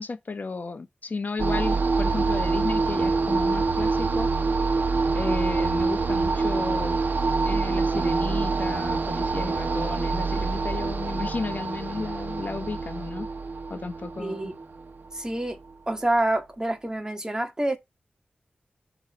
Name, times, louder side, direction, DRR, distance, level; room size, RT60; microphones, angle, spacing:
voice 1, 0.0-4.3 5.1-7.0 7.4-13.3 13.7-14.5, left 4 dB, 60° left, 1.0 m, -33 dB
sound 1, 1.4-15.6, right 4 dB, 70° right, 1.0 m, -26 dB
voice 2, 14.2-14.5 15.1-15.6 15.9-17.8, right 1 dB, 20° right, 1.7 m, -27 dB
5.2 x 4.8 x 5.5 m
cardioid pair, 55°, 3 cm